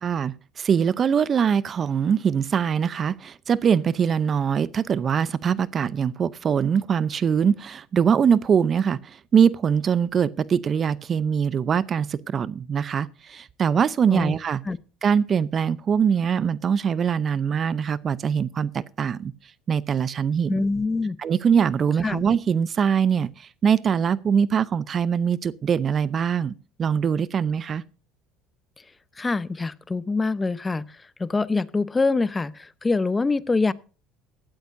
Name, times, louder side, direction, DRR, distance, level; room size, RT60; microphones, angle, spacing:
voice 1, 0.0-14.6 15.0-19.3 19.7-20.5 21.2-26.5 26.8-27.8, right 7 dB, 40° right, 0.6 m, -22 dB
voice 2, 20.5-21.2 22.0-22.2 29.2-33.7, left 3 dB, 20° left, 0.8 m, -25 dB
17.0 x 12.5 x 2.6 m
supercardioid pair, 95°, 0 cm